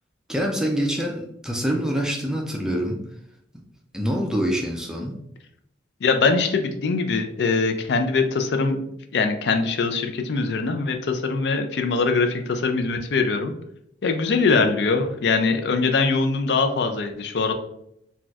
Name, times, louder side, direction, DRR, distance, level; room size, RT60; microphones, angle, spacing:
voice 1, 0.3-3.0 3.9-5.1, equal, 5° right, 1 dB, 0.4 m, -25 dB
voice 2, 6.0-13.5 14.0-17.5, left 4 dB, 65° left, 7 dB, 0.4 m, -22 dB
4.0 x 2.3 x 2.3 m, 0.76 s
head